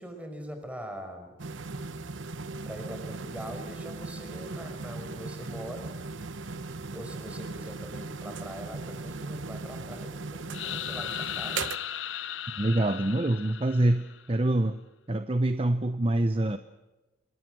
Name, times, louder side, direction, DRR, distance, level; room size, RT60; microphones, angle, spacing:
voice 1, 0.0-1.3 2.6-5.9 6.8-11.7, equal, 5° right, 5 dB, 5.1 m, -42 dB
sound 1, 1.4-11.8, right 3 dB, 70° right, 1.0 m, -38 dB
sound 2, 10.5-14.3, left 10 dB, 70° left, 0.8 m, -37 dB
voice 2, 12.6-14.8 15.1-16.6, right 1 dB, 30° right, 10 dB, 0.8 m, -25 dB
28.0 x 22.0 x 6.3 m, 1.1 s
head